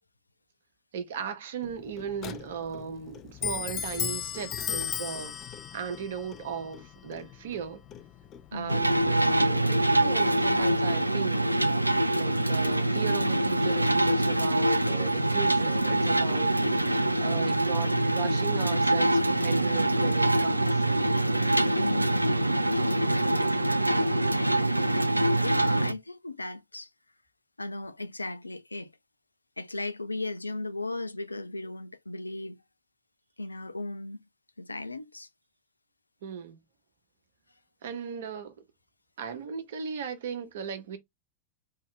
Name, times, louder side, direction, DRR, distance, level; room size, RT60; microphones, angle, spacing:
voice 1, 0.9-5.5 5.7-7.8 8.5-11.5 12.1-16.6 17.2-20.8 36.2-36.6 37.8-38.5 39.2-41.0, right 6 dB, 60° right, 1.0 m, -36 dB
Clock, 1.6-10.9, left 9 dB, 30° left, 0.5 m, -38 dB
voice 2, 8.5-8.9 21.8-23.1 25.3-26.9 27.6-28.9 29.6-32.6 33.4-34.2 34.6-35.3, left 2 dB, 80° left, 0.4 m, -36 dB
sound 1, 8.7-25.9, right 1 dB, 85° right, 0.3 m, -24 dB
3.7 x 2.8 x 3.2 m
figure-of-eight pair, 90°, 0 cm